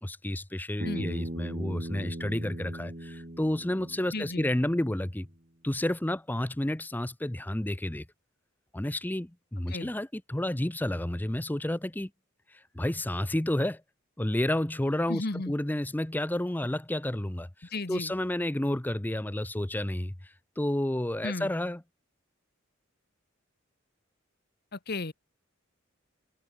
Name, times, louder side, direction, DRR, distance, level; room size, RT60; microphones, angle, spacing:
voice 1, 0.0-5.3 5.6-8.1 8.7-12.1 12.5-13.8 14.2-21.8, left 1 dB, 10° left, 0.6 m, -31 dB
Bass guitar, 0.8-5.1, right 1 dB, 40° right, 2.6 m, -39 dB
voice 2, 4.1-4.5 9.7-9.9 15.1-15.5 17.7-18.1 21.2-21.5 24.9-25.1, left 2 dB, 50° left, 1.3 m, -34 dB
head